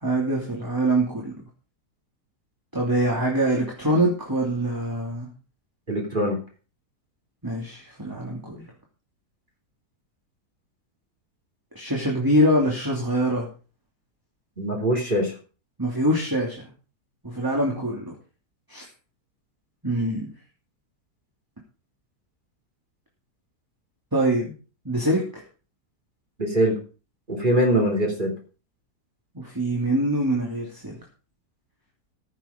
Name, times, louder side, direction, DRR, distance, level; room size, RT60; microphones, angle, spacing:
voice 1, 0.0-1.4 2.7-5.3 7.4-8.6 11.7-13.5 15.8-16.7 17.2-18.2 18.7-18.9 19.8-20.3 24.1-24.5 24.8-25.2 29.3-31.0, right 1 dB, 10° right, -2 dB, 2.7 m, -24 dB
voice 2, 5.9-6.4 14.6-15.3 26.4-26.8 27.3-28.3, right 1 dB, 30° right, 0 dB, 3.1 m, -22 dB
14.5 x 7.3 x 5.2 m, 0.36 s
omnidirectional pair, 1.8 m